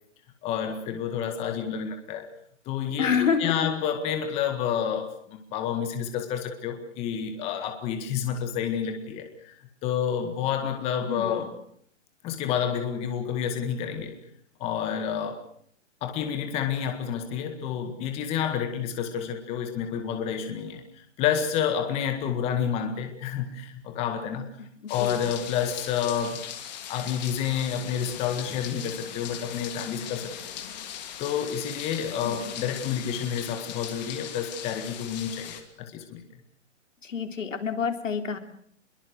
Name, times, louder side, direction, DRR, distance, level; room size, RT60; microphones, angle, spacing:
voice 1, 0.4-2.3 2.7-9.5 9.8-11.5 12.2-14.2 14.6-15.4 16.0-20.8 21.2-24.5 24.9-26.4 26.9-30.5 31.2-36.2, left 8 dB, 15° left, 6 dB, 1.8 m, -29 dB
voice 2, 3.0-3.7 11.0-11.4 25.0-25.3 32.2-32.5 37.0-38.4, left 6 dB, 80° left, 6 dB, 3.7 m, -28 dB
sound 1, 24.9-35.6, left 10 dB, 35° left, 3.0 m, -39 dB
26.5 x 22.5 x 6.6 m, 0.65 s
hypercardioid pair, 155°, 38 cm